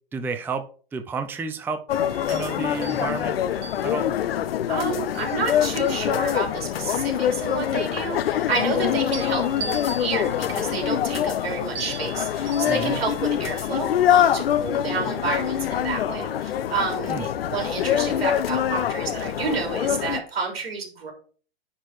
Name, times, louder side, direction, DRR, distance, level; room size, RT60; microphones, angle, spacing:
voice 1, 0.1-1.8 2.3-3.4 3.8-4.1 12.6-13.0 17.1-17.3, right 4 dB, 5° right, 8 dB, 0.5 m, -31 dB
sound 1, 1.9-20.2, left 10 dB, 70° left, 0.7 m, -25 dB
sound 2, 1.9-6.3 6.8-8.7 9.1-16.1 18.0-19.4 19.8-20.1, right 4 dB, 25° right, 3.6 m, -43 dB
voice 2, 4.7-21.1, right 5 dB, 75° right, 1 dB, 3.6 m, -30 dB
9.9 x 4.1 x 4.7 m, 0.40 s
hypercardioid pair, 110°, 30 cm